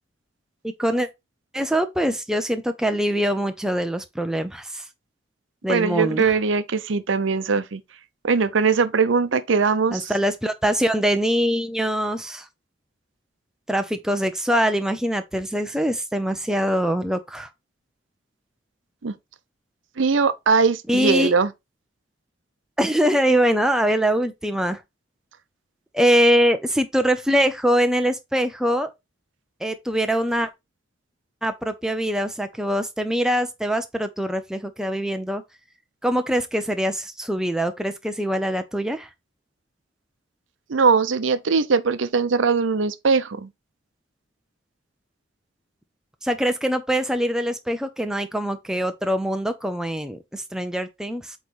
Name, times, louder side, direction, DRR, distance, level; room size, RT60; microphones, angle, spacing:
voice 1, 0.6-1.1 1.5-4.8 5.6-6.3 9.9-12.5 13.7-17.5 20.9-21.3 22.8-24.8 25.9-28.9 29.6-30.5 31.4-35.4 36.0-39.1 46.2-51.3, equal, 5° right, 0.6 m, -23 dB
voice 2, 5.7-7.8 8.2-10.1 19.0-19.1 20.0-21.5 40.7-43.5, right 5 dB, 85° right, 0.6 m, -21 dB
8.1 x 3.2 x 4.0 m
head